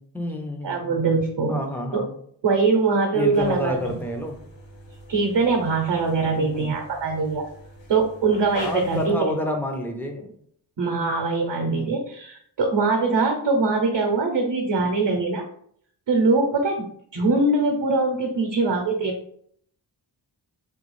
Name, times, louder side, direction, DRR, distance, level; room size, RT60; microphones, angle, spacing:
voice 1, 0.0-0.9 1.5-2.2 3.1-4.4 6.4-6.7 8.6-10.3 11.7-12.0, left 1 dB, 5° left, 3 dB, 0.5 m, -29 dB
voice 2, 0.6-1.6 1.9-2.0 2.4-4.0 5.1-7.5 7.9-9.4 10.8-15.5 16.1-19.2, right 3 dB, 70° right, 2 dB, 0.7 m, -22 dB
sound 1, 3.3-9.1, left 1 dB, 80° left, 0.9 m, -42 dB
3.7 x 2.3 x 3.1 m, 0.66 s
wide cardioid pair, 110°, 45 cm